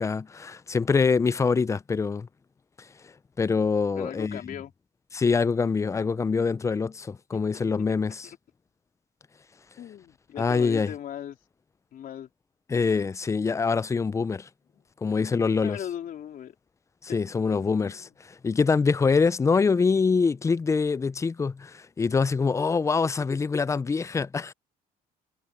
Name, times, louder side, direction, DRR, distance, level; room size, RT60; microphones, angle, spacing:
voice 1, 0.0-2.3 2.8-4.4 5.1-8.3 10.4-10.9 12.7-14.5 15.0-15.8 17.0-18.1 18.4-24.5, left 5 dB, 20° left, 0.4 m, -25 dB
voice 2, 4.0-4.7 7.3-7.4 9.8-11.4 11.9-12.3 14.7-14.8 15.6-16.5 17.8-18.1, left 10 dB, 55° left, 3.5 m, -38 dB
cardioid pair, 110°, 17 cm